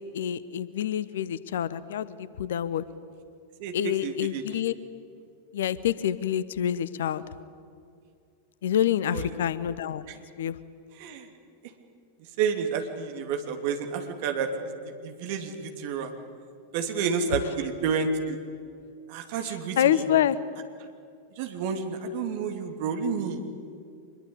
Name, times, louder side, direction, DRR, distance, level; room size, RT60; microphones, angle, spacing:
voice 1, 0.0-2.8 3.7-4.7 5.5-7.2 8.6-10.0 10.4-10.6 19.8-20.4, left 10 dB, 60° left, 18 dB, 0.9 m, -27 dB
voice 2, 3.6-4.4 9.1-9.3 10.1-10.2 11.0-11.3 12.4-14.7 15.0-16.1 16.7-18.4 19.1-20.1 21.4-23.4, right 5 dB, 50° right, 6 dB, 2.8 m, -30 dB
25.0 x 21.5 x 8.6 m, 2.4 s
figure-of-eight pair, 90°, 0 cm